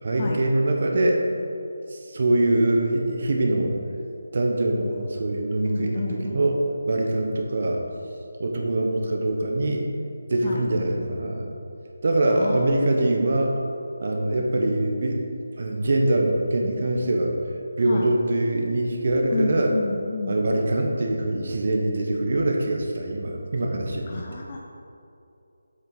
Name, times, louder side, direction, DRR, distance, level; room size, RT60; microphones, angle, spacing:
voice 1, 0.0-1.2 1.9-3.8 4.3-7.8 8.4-9.9 10.3-11.5 12.0-13.5 14.0-15.2 15.6-17.3 17.8-19.8 20.3-24.4, right 1 dB, 55° right, 1 dB, 1.0 m, -23 dB
voice 2, 5.7-6.4 10.4-10.6 12.3-12.7 17.9-18.0 19.3-20.4 24.1-24.6, left 4 dB, 35° left, 0 dB, 0.5 m, -30 dB
7.6 x 6.6 x 4.0 m, 2.6 s
figure-of-eight pair, 160°, 0 cm